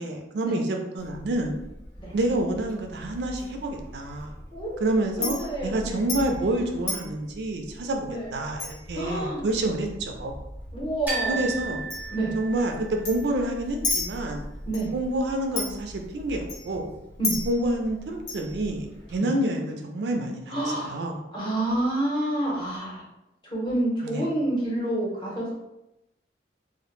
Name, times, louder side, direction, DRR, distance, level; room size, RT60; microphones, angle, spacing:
voice 1, 0.0-1.5 2.1-4.3 4.8-5.4 5.6-10.3 11.3-11.8 12.4-14.5 14.9-16.9 17.5-20.6 20.9-21.2 24.0-24.2, right 1 dB, 75° right, 3 dB, 0.3 m, -28 dB
Chink clink, 1.0-19.2, left 2 dB, 80° left, 1.0 m, -37 dB
voice 2, 4.5-6.1 8.0-8.3 8.9-9.4 10.7-11.4 12.1-12.3 14.7-14.9 17.2-17.4 19.2-19.3 20.5-21.0 21.3-23.0 23.5-25.5, right 1 dB, 25° left, -5 dB, 0.7 m, -28 dB
sound 1, 11.1-13.0, right 4 dB, 10° right, 0.5 m, -33 dB
2.1 x 2.0 x 3.0 m, 0.89 s
head